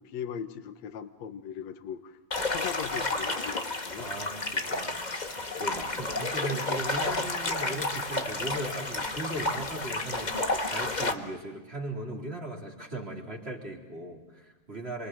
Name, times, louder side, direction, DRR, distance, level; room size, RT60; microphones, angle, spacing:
voice 1, 0.0-2.2 2.5-4.1, left 8 dB, 65° left, 8 dB, 2.5 m, -39 dB
sound 1, 2.3-11.1, left 2 dB, 30° left, 0.8 m, -31 dB
voice 2, 4.0-5.3 5.6-15.1, right 1 dB, 20° right, 0 dB, 3.9 m, -38 dB
28.0 x 26.0 x 7.8 m, 1.2 s
omnidirectional pair, 3.5 m